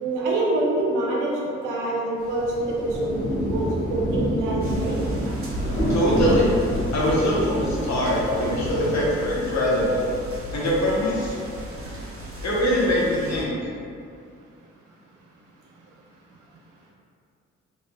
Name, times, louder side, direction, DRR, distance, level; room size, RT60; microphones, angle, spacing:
voice 1, 0.0-1.3 1.6-3.2 3.4-4.9 8.8-8.9, right 2 dB, 80° right, -3 dB, 0.6 m, -25 dB
Rain, 2.2-9.4, equal, 85° left, 1.2 m, -28 dB
sound 1, 4.6-13.4, equal, 45° right, 0.7 m, -34 dB
voice 2, 5.9-6.5 6.9-10.1 10.5-11.3 12.4-13.7, equal, 60° left, -6 dB, 0.9 m, -23 dB
3.1 x 3.1 x 2.2 m, 2.5 s
hypercardioid pair, 40°, 31 cm